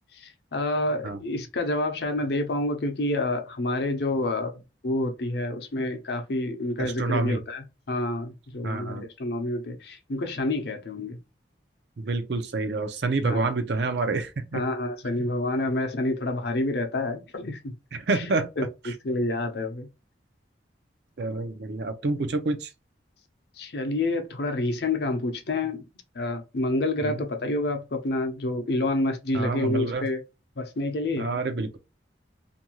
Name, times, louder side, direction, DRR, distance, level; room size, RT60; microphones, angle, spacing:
voice 1, 0.1-11.2 13.2-13.5 14.5-17.7 18.1-19.9 23.6-25.9 26.1-30.2 30.6-31.3, left 2 dB, 60° left, 0.6 m, -28 dB
voice 2, 6.8-7.4 8.6-9.0 12.0-14.6 17.9-18.5 21.2-22.7 27.0-27.2 29.3-30.1 31.2-31.8, right 3 dB, 60° right, 0.5 m, -28 dB
2.6 x 2.3 x 2.9 m
head